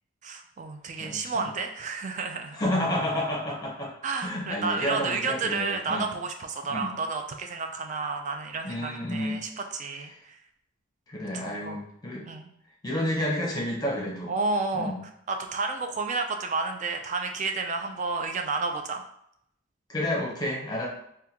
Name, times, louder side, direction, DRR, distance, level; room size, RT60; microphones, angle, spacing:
voice 1, 0.2-2.6 4.0-10.4 11.4-11.8 12.3-12.5 14.3-14.9 15.3-19.0, right 4 dB, 35° right, 4 dB, 0.3 m, -31 dB
voice 2, 1.0-1.5 2.5-3.9 4.2-6.1 6.7-6.9 8.6-9.4 11.1-12.2 12.8-14.3 14.7-15.0 19.9-20.9, left 1 dB, 20° left, -3 dB, 0.7 m, -30 dB
3.6 x 2.2 x 2.8 m, 0.73 s
head